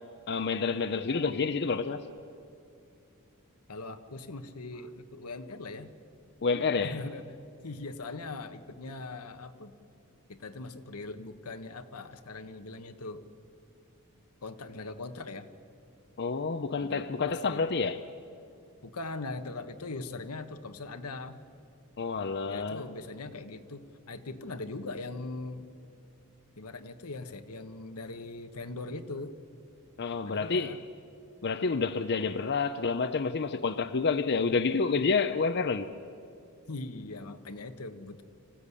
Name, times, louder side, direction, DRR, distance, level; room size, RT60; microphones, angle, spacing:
voice 1, 0.3-2.0 6.4-7.0 16.2-18.0 22.0-22.8 30.0-30.7 31.4-35.9, left 4 dB, 50° left, 0.6 m, -29 dB
voice 2, 3.7-5.9 6.8-7.3 7.6-9.8 10.3-13.2 14.4-15.5 16.8-17.6 18.8-21.4 22.4-25.7 26.6-29.3 30.2-30.8 36.7-38.2, left 3 dB, 85° left, 1.3 m, -40 dB
25.5 x 15.5 x 9.9 m
head